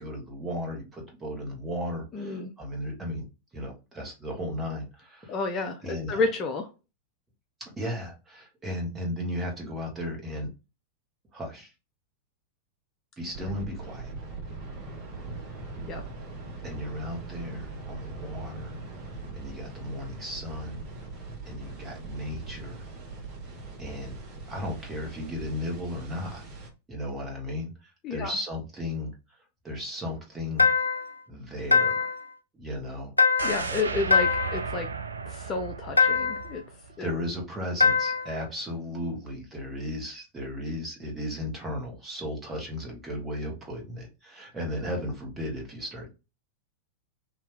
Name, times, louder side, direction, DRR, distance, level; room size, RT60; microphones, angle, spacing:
voice 1, 0.0-3.3 3.5-5.4 5.8-6.2 7.6-10.5 11.3-11.7 13.2-14.1 16.6-18.8 19.3-20.9 21.4-22.9 23.8-24.2 24.5-26.4 26.9-29.1 29.6-30.7 31.3-32.1 32.5-33.1 33.9-34.1 37.0-46.1, left 1 dB, 15° right, 0 dB, 1.5 m, -35 dB
voice 2, 2.1-2.5 5.3-6.7 15.9-16.0 28.0-28.3 33.4-34.9 35.3-36.6 37.0-37.1, left 3 dB, 30° left, 5 dB, 0.5 m, -30 dB
sound 1, 13.3-26.7, right 3 dB, 35° right, 1.3 m, -41 dB
sound 2, 30.6-31.1 31.7-32.3 33.2-33.7 34.1-34.7 36.0-36.5 37.8-38.3, left 5 dB, 80° left, 0.3 m, -23 dB
sound 3, 33.4-37.4 37.7-37.8, right 5 dB, 75° right, 0.4 m, -35 dB
2.8 x 2.7 x 3.6 m, 0.28 s
figure-of-eight pair, 90°, 0 cm